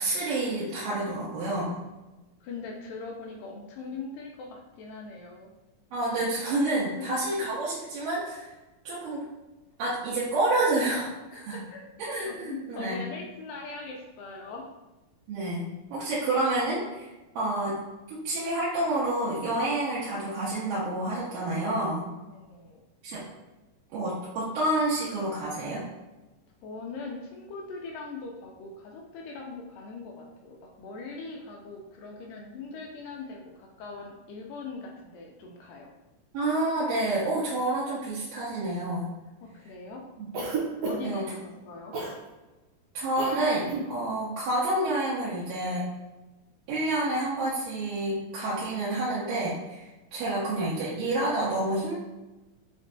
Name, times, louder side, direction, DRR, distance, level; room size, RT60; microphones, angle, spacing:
voice 1, 0.0-1.8 5.9-8.5 8.9-9.2 9.8-11.6 12.0-13.0 15.3-17.1 17.4-17.8 18.1-22.1 23.0-23.2 23.9-25.8 36.3-39.1 40.2-40.3 41.0-41.2 42.9-45.9 46.7-49.8 50.1-52.0, right 2 dB, 90° right, -8 dB, 2.5 m, -29 dB
voice 2, 2.4-5.5 7.0-7.1 11.3-11.9 12.3-14.7 22.2-22.8 26.6-35.9 39.4-40.0 40.8-42.0, left 3 dB, 80° left, 0 dB, 2.2 m, -41 dB
Cough, 40.3-41.2 41.9-42.2 43.2-43.4 43.6-43.9, right 4 dB, 70° right, 1.6 m, -31 dB
6.1 x 2.2 x 2.6 m, 1.1 s
omnidirectional pair, 3.9 m